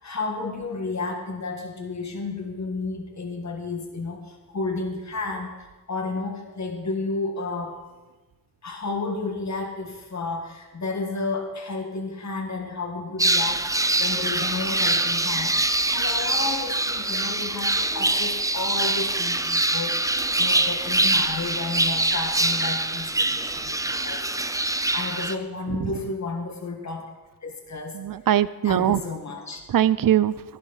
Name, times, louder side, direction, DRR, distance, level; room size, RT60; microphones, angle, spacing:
voice 1, 0.0-5.6 5.9-7.8 8.6-24.5 24.9-27.1 27.4-28.0 28.6-29.6, left 3 dB, 50° left, 3 dB, 1.7 m, -32 dB
sound 1, 13.2-25.4, right 2 dB, 10° right, 0.5 m, -24 dB
voice 2, 25.7-26.0 27.9-29.0 29.7-30.4, right 11 dB, 65° right, 17 dB, 0.6 m, -22 dB
15.5 x 11.0 x 4.1 m, 1.2 s
wide cardioid pair, 75°, 36 cm